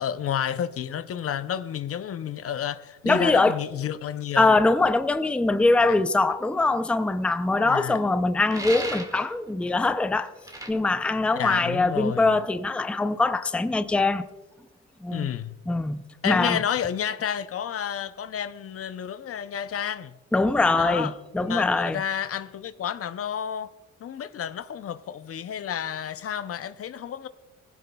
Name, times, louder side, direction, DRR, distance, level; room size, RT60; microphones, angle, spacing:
voice 1, 0.0-4.6 5.8-6.0 7.6-8.0 11.4-12.3 15.1-15.6 16.2-20.2 20.8-21.1 21.4-23.7 24.0-27.3, left 9 dB, 50° left, 0.6 m, -30 dB
voice 2, 3.1-3.6 4.4-10.3 10.7-14.2 15.0-15.3 15.7-16.6 20.3-22.0, left 3 dB, 5° left, 0.5 m, -23 dB
sound 1, 8.5-9.3 10.5-10.7, right 1 dB, 10° right, 1.8 m, -34 dB
18.5 x 16.0 x 2.3 m
cardioid pair, 90°, 30 cm